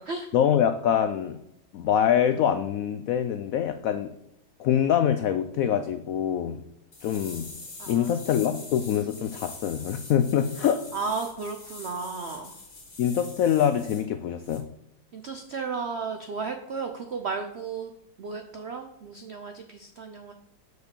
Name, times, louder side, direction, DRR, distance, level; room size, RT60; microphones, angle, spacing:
voice 1, 0.3-1.4 1.7-4.1 4.6-6.6 7.0-7.5 7.9-10.8 13.0-14.6, left 9 dB, 80° left, 9 dB, 0.7 m, -24 dB
sound 1, 6.9-14.0 14.4-14.6, left 3 dB, 50° left, 2.4 m, -44 dB
voice 2, 7.8-8.2 10.9-12.5 15.1-17.9 18.2-20.3, right 4 dB, 75° right, 5 dB, 0.6 m, -34 dB
6.3 x 4.9 x 6.8 m, 0.81 s
omnidirectional pair, 2.0 m